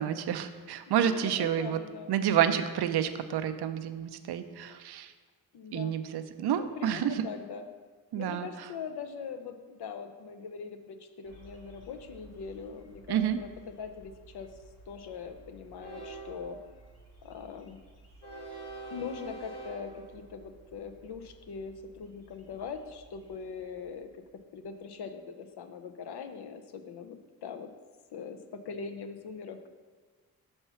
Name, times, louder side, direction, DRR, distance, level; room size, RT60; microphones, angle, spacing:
voice 1, 0.0-1.8 2.1-5.1 5.7-7.3 8.1-8.5 13.1-13.4, right 9 dB, 85° right, 10 dB, 0.5 m, -29 dB
voice 2, 1.0-2.5 5.5-6.0 6.5-7.7 8.1-14.5 14.9-16.6 17.2-17.8 18.9-24.1 24.5-27.7 28.1-29.7, left 6 dB, 85° left, 7 dB, 0.6 m, -42 dB
Train, 11.2-24.2, right 3 dB, 40° left, 1.7 m, -49 dB
5.6 x 4.4 x 5.6 m, 1.4 s
cardioid pair, 65°, 38 cm